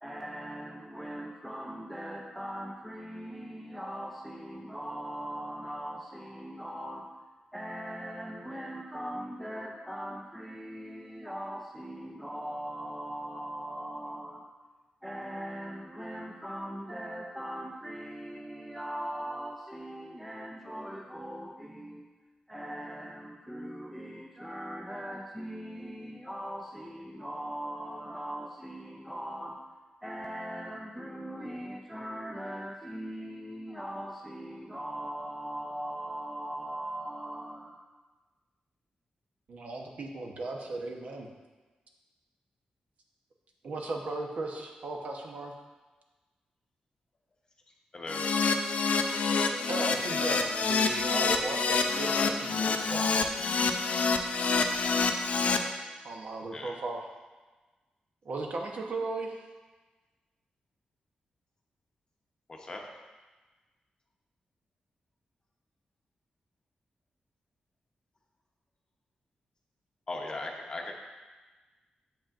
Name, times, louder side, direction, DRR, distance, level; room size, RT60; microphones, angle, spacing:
voice 1, 0.0-7.2 7.5-14.5 15.0-22.1 22.5-29.7 30.0-37.8, equal, ahead, -1 dB, 0.4 m, -40 dB
voice 2, 39.5-41.3 43.6-45.5 49.7-53.3 56.0-57.1 58.2-59.5, right 2 dB, 60° right, 1 dB, 0.9 m, -36 dB
voice 3, 47.9-48.3 56.5-56.8 62.5-62.8 70.1-70.9, left 2 dB, 30° left, 1 dB, 0.8 m, -38 dB
Keyboard (musical), 48.1-55.6, left 4 dB, 55° left, 0.5 m, -27 dB
7.9 x 7.3 x 2.5 m, 1.3 s
wide cardioid pair, 155°, 3 cm